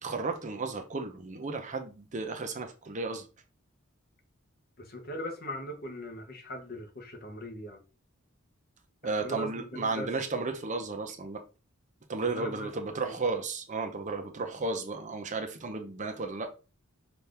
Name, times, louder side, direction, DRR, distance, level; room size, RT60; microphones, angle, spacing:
voice 1, 0.0-3.3 9.0-11.4 12.1-16.5, right 3 dB, 35° right, 0.7 m, -34 dB
voice 2, 4.8-7.8 9.0-10.4 12.2-12.7 13.0-13.1, equal, 45° left, 1.0 m, -40 dB
5.7 x 2.6 x 3.4 m
head